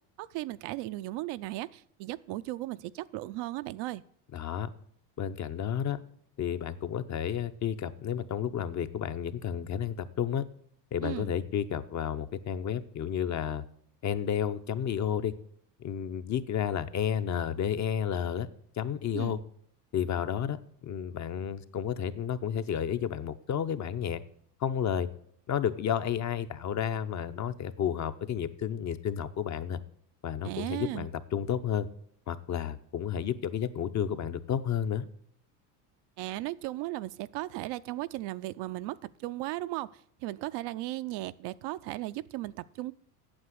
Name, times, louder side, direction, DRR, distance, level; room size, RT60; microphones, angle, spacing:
voice 1, 0.2-4.0 11.0-11.3 19.1-19.4 30.4-31.1 36.2-42.9, right 17 dB, 55° right, 0.6 m, -36 dB
voice 2, 4.3-4.7 5.2-6.0 6.4-10.4 10.9-13.6 14.0-15.3 15.8-18.5 18.8-19.4 19.9-24.2 24.6-25.1 25.5-29.8 30.2-31.9 32.3-35.1, left 9 dB, 35° left, 0.7 m, -31 dB
8.8 x 7.3 x 7.8 m
supercardioid pair, 95°, 50 cm